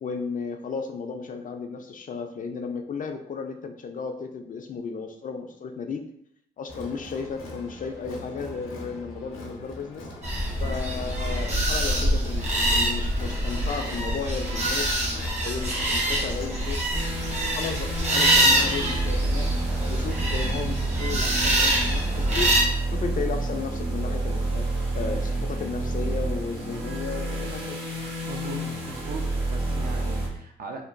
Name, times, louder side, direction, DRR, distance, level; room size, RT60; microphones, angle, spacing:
voice 1, 0.0-6.1 6.6-10.1 10.6-14.9 15.4-16.9 17.4-19.5 19.9-22.6 22.9-24.7 24.9-27.8, left 5 dB, 40° left, 5 dB, 0.4 m, -34 dB
Crowd, 6.7-16.9, left 1 dB, 80° left, 0.6 m, -42 dB
sound 1, 10.2-22.6, right 1 dB, 35° right, 1.0 m, -25 dB
sound 2, 16.9-30.3, right 2 dB, 80° right, 1.1 m, -29 dB
voice 2, 28.3-30.8, right 3 dB, 50° right, 3 dB, 0.5 m, -39 dB
2.9 x 2.1 x 2.5 m, 0.73 s
supercardioid pair, 50°, 20 cm